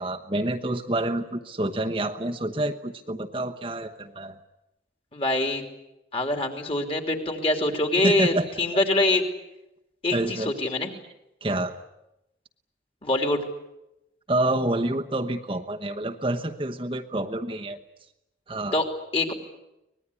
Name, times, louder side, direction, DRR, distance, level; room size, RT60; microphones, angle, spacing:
voice 1, 0.0-4.4 8.0-8.4 8.7-8.8 10.1-10.5 11.4-11.7 14.3-17.8 18.5-18.8, right 1 dB, 30° right, 3 dB, 1.0 m, -28 dB
voice 2, 5.1-5.6 6.1-9.2 10.0-10.9 13.0-13.4 18.7-18.8 19.1-19.3, left 2 dB, 30° left, 5 dB, 3.1 m, -24 dB
24.5 x 20.0 x 9.8 m, 0.89 s
head